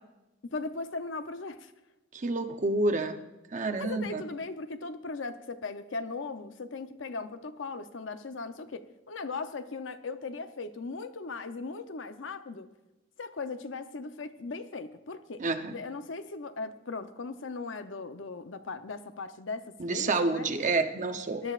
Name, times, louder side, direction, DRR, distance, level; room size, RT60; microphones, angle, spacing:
voice 1, 0.5-1.7 3.8-12.7 13.2-20.5 21.4-21.5, left 4 dB, 75° left, 10 dB, 0.7 m, -38 dB
voice 2, 2.1-3.2 3.5-4.2 15.4-15.7 19.8-21.5, right 3 dB, 40° right, 7 dB, 0.7 m, -29 dB
20.0 x 11.0 x 2.5 m, 1.0 s
head